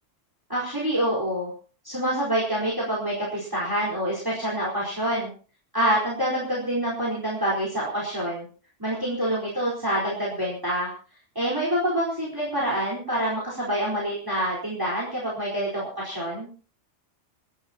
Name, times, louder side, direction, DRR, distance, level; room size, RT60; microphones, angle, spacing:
voice 1, 0.5-1.5 1.8-5.3 5.7-8.5 8.8-10.9 11.3-16.5, right 1 dB, 15° right, -4 dB, 4.5 m, -26 dB
28.5 x 12.5 x 2.9 m, 0.39 s
omnidirectional pair, 1.2 m